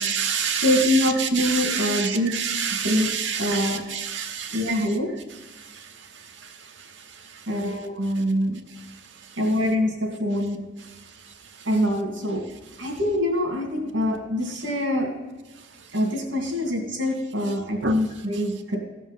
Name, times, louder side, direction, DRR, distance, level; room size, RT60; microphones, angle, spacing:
voice 1, 0.0-4.9 5.5-7.5 8.8-8.9 11.6-11.7 17.8-18.0, right 7 dB, 65° right, 0.8 m, -29 dB
voice 2, 0.6-2.3 2.8-3.1 3.4-3.8 4.5-5.1 7.5-8.5 9.4-10.6 11.6-12.4 12.8-15.1 15.9-18.8, left 1 dB, 90° right, 2.7 m, -24 dB
15.0 x 5.4 x 5.4 m
head